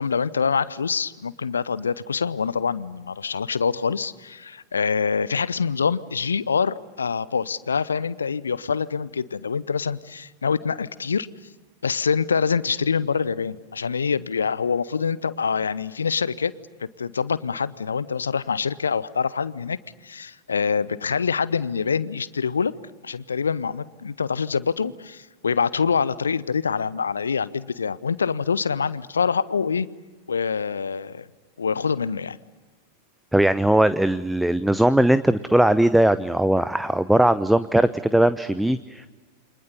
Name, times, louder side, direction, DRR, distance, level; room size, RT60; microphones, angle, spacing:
voice 1, 0.0-11.3 11.8-16.5 16.8-19.8 20.0-22.7 23.0-29.9 30.3-31.3 31.6-32.4, left 6 dB, 70° left, 19 dB, 0.8 m, -25 dB
voice 2, 33.3-39.1, right 1 dB, 5° right, 14 dB, 0.8 m, -19 dB
29.0 x 25.5 x 6.9 m, 1.3 s
figure-of-eight pair, 90°, 0 cm